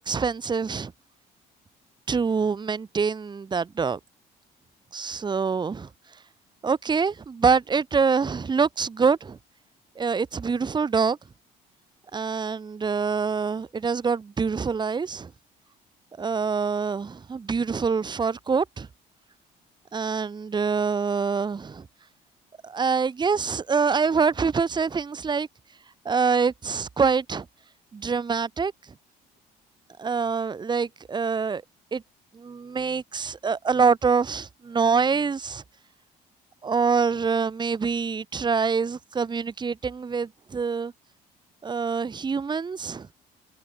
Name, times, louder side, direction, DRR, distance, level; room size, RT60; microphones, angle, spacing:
voice 1, 0.1-0.9 2.1-4.0 4.9-5.9 6.6-9.4 9.9-11.2 12.1-15.3 16.2-18.9 19.9-21.8 22.6-25.5 26.0-27.4 27.9-28.7 30.0-31.6 31.9-32.0 32.3-35.6 36.6-40.9 41.6-43.1, right 5 dB, 25° right, 1.6 m, -25 dB
cardioid pair, 110°, 17 cm